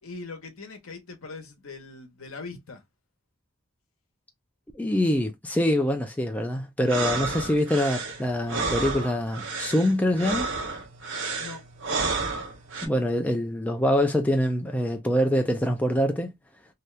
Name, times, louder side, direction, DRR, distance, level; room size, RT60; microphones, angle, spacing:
voice 1, 0.0-2.8 11.4-11.6, left 3 dB, 75° left, 0.9 m, -41 dB
voice 2, 4.8-10.5 12.8-16.3, left 1 dB, 5° left, 0.3 m, -24 dB
sound 1, 6.8-12.9, right 3 dB, 60° right, 0.7 m, -31 dB
2.7 x 2.3 x 3.0 m
head